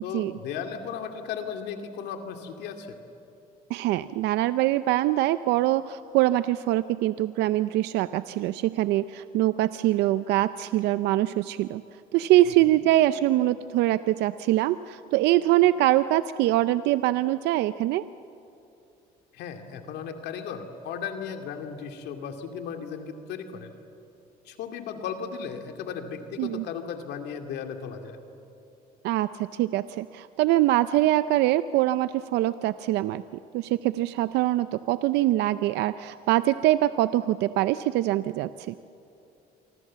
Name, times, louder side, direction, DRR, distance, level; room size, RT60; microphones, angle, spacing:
voice 1, 0.0-3.0 12.6-12.7 19.3-23.7 24.4-28.2, left 7 dB, 80° left, 5 dB, 2.5 m, -36 dB
voice 2, 3.7-11.8 12.1-18.0 26.4-26.6 29.0-33.2 33.5-38.7, right 15 dB, 85° right, 13 dB, 0.5 m, -23 dB
28.0 x 24.5 x 7.5 m, 2.8 s
cardioid pair, 110°, 17 cm